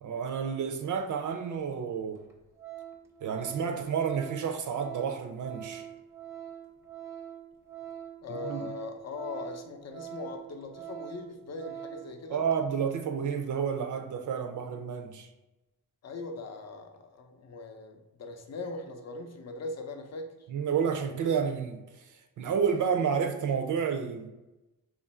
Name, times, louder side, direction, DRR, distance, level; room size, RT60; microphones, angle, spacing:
voice 1, 0.0-2.2 3.2-5.9 8.3-8.7 12.3-15.3 20.5-21.8 22.4-24.3, right 7 dB, 55° right, 0.4 m, -30 dB
Organ, 2.2-2.3 2.6-12.2 12.5-12.6, right 10 dB, 10° right, 0.5 m, -44 dB
voice 2, 8.2-12.4 16.0-20.3, left 3 dB, 45° left, 0.6 m, -40 dB
3.0 x 2.5 x 4.2 m
cardioid pair, 120°, 37 cm